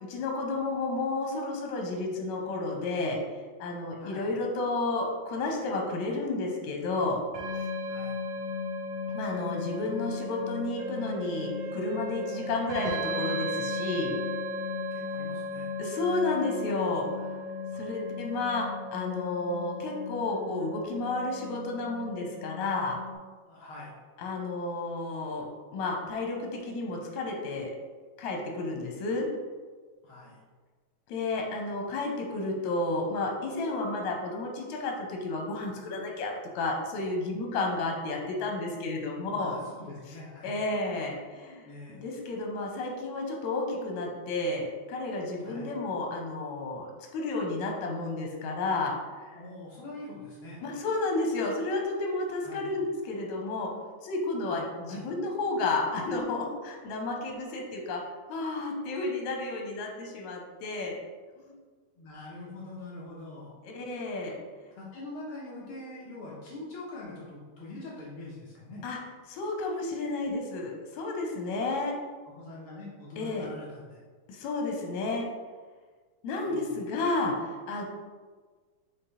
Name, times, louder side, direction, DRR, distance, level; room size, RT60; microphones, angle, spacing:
voice 1, 0.0-3.2 3.6-7.2 9.1-14.2 15.8-17.3 17.8-23.0 24.2-25.5 25.7-27.7 28.2-29.3 31.1-39.6 40.4-46.9 47.1-48.9 49.2-49.4 50.6-58.0 58.3-61.0 61.4-61.5 63.6-64.4 68.8-69.0 69.3-71.9 73.2-73.5 74.3-75.3 76.2-77.8, left 2 dB, 80° left, 1 dB, 2.3 m, -31 dB
voice 2, 3.9-4.3 7.9-8.2 14.9-15.7 17.7-18.0 23.5-23.9 30.0-30.4 39.3-40.5 41.6-42.0 45.4-45.7 49.3-50.6 52.4-52.7 54.4-55.1 58.3-58.4 62.0-63.5 64.8-68.8 72.3-74.0 76.4-76.8, left 2 dB, 60° left, -5 dB, 1.6 m, -44 dB
sound 1, 7.3-23.1, left 2 dB, 60° right, 2.3 m, -36 dB
Wind instrument woodwind instrument, 10.8-15.0, right 2 dB, 80° right, 2.0 m, -41 dB
5.9 x 4.3 x 4.0 m, 1.5 s
omnidirectional pair, 3.3 m